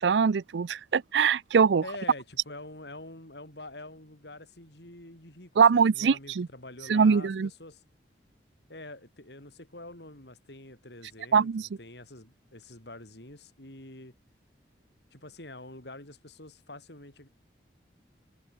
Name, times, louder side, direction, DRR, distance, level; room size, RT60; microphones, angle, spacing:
voice 1, 0.0-1.8 5.6-6.5 6.9-7.5 11.3-11.7, right 6 dB, 80° right, 0.5 m, -22 dB
voice 2, 1.8-7.8 8.7-14.1 15.1-17.3, left 2 dB, 70° left, 7.3 m, -46 dB
head